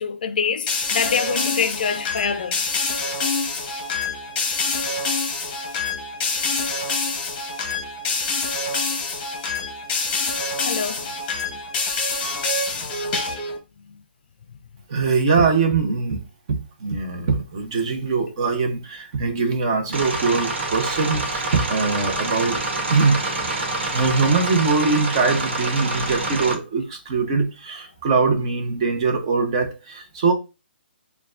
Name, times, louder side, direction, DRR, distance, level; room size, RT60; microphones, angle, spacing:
voice 1, 0.0-2.6 10.7-11.1, left 6 dB, 50° left, 0.4 m, -25 dB
sound 1, 0.7-13.6, left 3 dB, 20° left, 1.0 m, -26 dB
voice 2, 14.9-16.2 16.5-22.6 22.9-23.2 23.9-30.3, right 4 dB, 30° right, 0.8 m, -22 dB
sound 2, 19.9-26.5, right 2 dB, 90° right, 1.2 m, -26 dB
6.4 x 2.3 x 2.5 m
hypercardioid pair, 170°, 6 cm